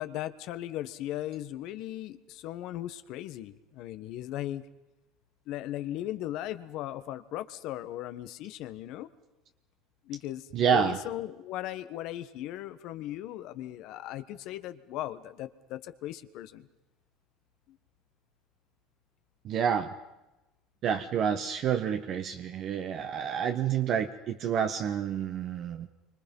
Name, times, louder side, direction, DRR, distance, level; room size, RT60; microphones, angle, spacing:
voice 1, 0.0-4.6 5.5-9.1 10.0-16.7 17.7-17.8, left 13 dB, 65° left, 11 dB, 1.4 m, -37 dB
voice 2, 10.5-11.0 19.4-19.9 20.8-25.9, right 8 dB, 50° right, 6 dB, 1.3 m, -28 dB
28.0 x 25.0 x 5.5 m, 1.0 s
supercardioid pair, 120°, 0 cm